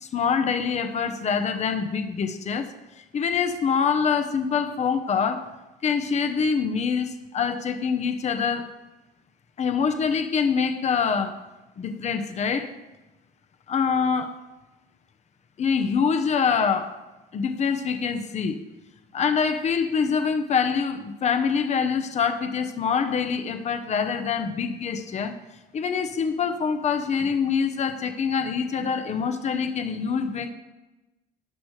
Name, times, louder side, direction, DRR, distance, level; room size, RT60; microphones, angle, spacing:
voice 1, 0.0-2.7 3.1-5.5 5.8-8.7 9.6-11.3 11.8-12.7 13.7-14.4 15.6-16.9 17.3-18.6 19.1-25.3 25.7-30.5, left 6 dB, 40° left, 8 dB, 0.9 m, -25 dB
17.0 x 6.1 x 3.3 m, 1.0 s
cardioid pair, 110°, 17 cm